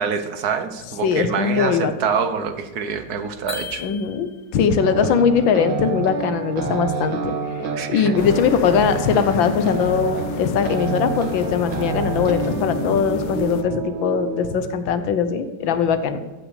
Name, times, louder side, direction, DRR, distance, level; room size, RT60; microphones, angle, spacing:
voice 1, 0.0-3.8 7.7-8.1, right 6 dB, 60° right, 9 dB, 1.5 m, -25 dB
voice 2, 1.0-2.2 3.8-7.3 7.9-16.2, left 6 dB, 90° left, 11 dB, 1.7 m, -20 dB
sound 1, 3.5-4.6, left 6 dB, 30° left, 0.9 m, -35 dB
sound 2, 4.8-14.6, right 5 dB, 75° right, 2.1 m, -28 dB
sound 3, 8.2-13.6, left 7 dB, 75° left, 1.4 m, -31 dB
14.5 x 6.1 x 6.6 m, 1.3 s
omnidirectional pair, 2.0 m